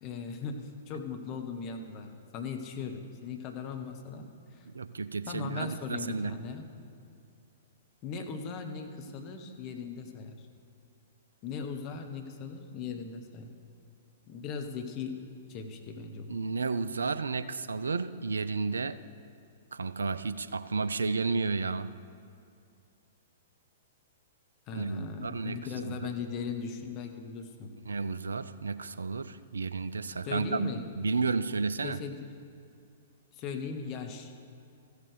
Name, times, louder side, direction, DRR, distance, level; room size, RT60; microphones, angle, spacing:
voice 1, 0.0-2.1 2.3-4.7 5.3-6.7 8.0-10.4 11.4-13.5 14.3-15.2 15.5-16.3 24.7-27.7 30.2-30.8 31.8-32.3 33.3-34.3, left 5 dB, 35° left, 5 dB, 1.1 m, -38 dB
voice 2, 4.7-6.4 16.3-19.0 19.7-21.9 24.7-26.1 27.9-30.7 31.0-32.0, right 4 dB, 70° right, 13 dB, 0.4 m, -32 dB
15.0 x 6.7 x 5.0 m, 2.4 s
figure-of-eight pair, 110°, 0 cm